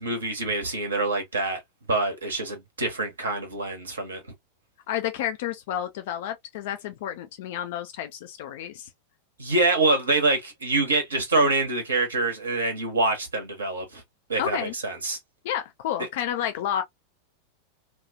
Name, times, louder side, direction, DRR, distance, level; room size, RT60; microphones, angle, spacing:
voice 1, 0.0-1.6 1.9-4.2 9.4-14.0 14.3-15.2, right 2 dB, 70° right, 1.1 m, -25 dB
voice 2, 4.9-8.9 14.4-14.7 15.4-16.8, left 10 dB, 50° left, 0.4 m, -30 dB
3.0 x 2.3 x 2.4 m
figure-of-eight pair, 90°, 0 cm